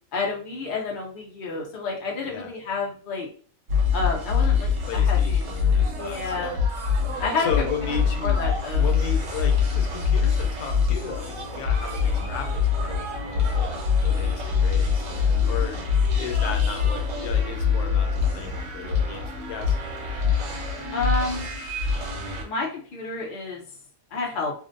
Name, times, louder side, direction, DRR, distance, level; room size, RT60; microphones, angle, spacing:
voice 1, 0.1-3.3 3.9-5.5 6.0-6.6 7.2-7.5 8.2-8.9 15.3-15.5 20.9-21.5 22.4-23.6 24.1-24.5, left 3 dB, 50° left, -1 dB, 0.7 m, -30 dB
sound 1, 3.7-22.4, left 6 dB, 65° right, 1.0 m, -24 dB
voice 2, 4.8-6.6 7.1-15.9 16.2-19.8, left 7 dB, 90° left, 4 dB, 1.1 m, -35 dB
2.6 x 2.0 x 2.5 m, 0.44 s
omnidirectional pair, 1.5 m